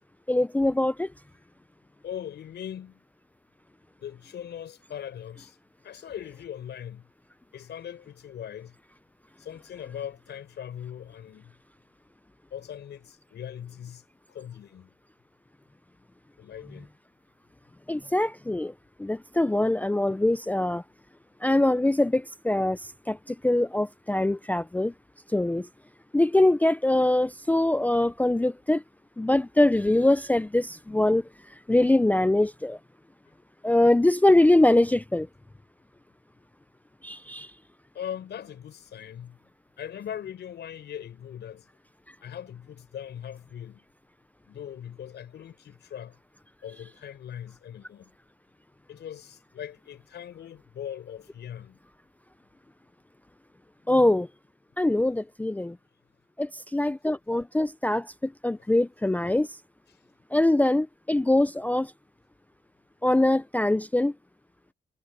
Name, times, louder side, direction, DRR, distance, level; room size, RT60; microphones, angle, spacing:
voice 1, 0.3-1.1 17.9-18.7 19.0-20.8 21.4-22.8 23.1-24.9 25.3-25.7 26.1-28.8 29.2-31.2 31.7-32.8 33.6-35.3 37.0-37.5 53.9-54.3 54.8-55.7 56.4-58.1 58.4-59.5 60.3-61.9 63.0-64.1, left 1 dB, 10° left, 0.4 m, -23 dB
voice 2, 2.0-3.0 4.0-5.6 5.8-7.1 7.5-8.8 9.4-11.5 12.5-14.0 14.3-14.9 16.4-16.9 37.9-39.4 39.8-41.7 42.2-43.8 44.5-46.2 46.6-48.1 48.9-51.8, left 9 dB, 80° left, 5.4 m, -40 dB
cardioid pair, 115°, 17 cm